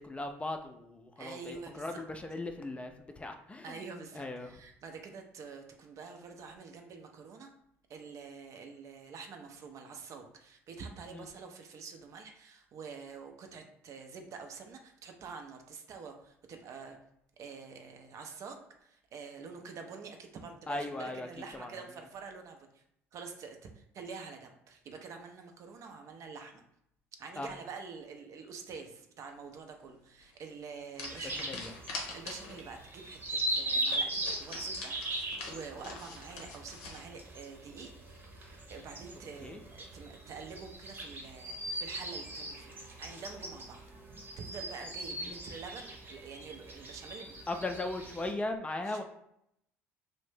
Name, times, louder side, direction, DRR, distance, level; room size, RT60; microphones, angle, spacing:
voice 1, 0.0-3.8 4.1-4.5 11.1-11.3 20.7-21.3 21.5-21.7 27.4-27.5 31.2-31.7 39.4-39.6 45.2-45.4 47.5-49.0, left 2 dB, 15° left, 5 dB, 0.4 m, -38 dB
voice 2, 1.2-2.0 3.6-7.5 7.9-17.0 17.4-22.8 23.1-26.6 27.2-31.6 32.1-37.9 38.7-43.8 44.4-47.5 48.8-49.0, right 5 dB, 50° right, 4 dB, 0.5 m, -47 dB
sound 1, 30.2-30.4 30.9-32.7 33.0-33.1 33.4-33.5 33.9-37.0, left 3 dB, 75° left, 0.6 m, -44 dB
sound 2, 31.0-48.3, right 1 dB, 30° right, 0.8 m, -39 dB
2.5 x 2.1 x 3.2 m, 0.75 s
hypercardioid pair, 60°, 7 cm